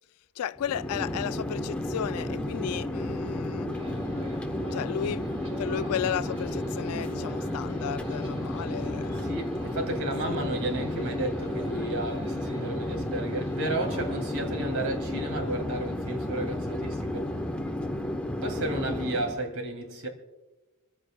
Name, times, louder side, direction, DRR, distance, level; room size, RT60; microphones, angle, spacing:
voice 1, 0.4-3.7 4.7-5.2 5.6-9.4 10.2-10.4, left 9 dB, 75° left, 0.3 m, -34 dB
Chatter / Fixed-wing aircraft airplane, 0.6-19.5, left 1 dB, 5° left, 0.9 m, -32 dB
sound 1, 3.7-14.3, right 2 dB, 30° right, 2.5 m, -47 dB
voice 2, 9.1-17.4 18.4-20.1, right 1 dB, 85° right, 2.7 m, -33 dB
26.5 x 15.0 x 2.2 m
head